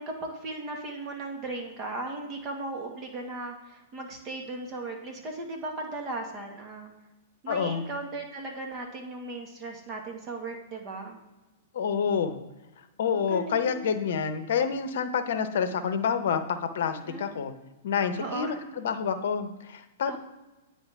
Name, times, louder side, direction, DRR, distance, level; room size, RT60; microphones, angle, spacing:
voice 1, 0.0-6.9 7.4-11.2 13.1-13.9 16.9-17.3 18.2-18.5 20.1-20.2, right 2 dB, 30° right, 2 dB, 1.8 m, -37 dB
voice 2, 7.5-7.8 11.7-12.4 13.0-17.5 17.8-20.2, left 6 dB, 60° left, 10 dB, 0.8 m, -28 dB
9.8 x 4.1 x 3.6 m, 1.1 s
figure-of-eight pair, 105°, 0 cm